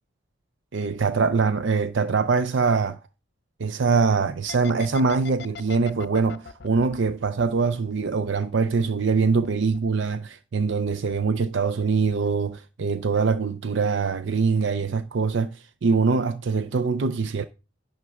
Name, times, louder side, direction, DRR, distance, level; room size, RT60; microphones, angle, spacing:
voice 1, 0.7-3.0 3.6-17.4, right 4 dB, 65° right, 0.5 m, -23 dB
sound 1, 4.5-8.2 8.5-9.5 9.7-9.9, left 6 dB, 55° left, 0.6 m, -40 dB
11.0 x 3.9 x 7.0 m
head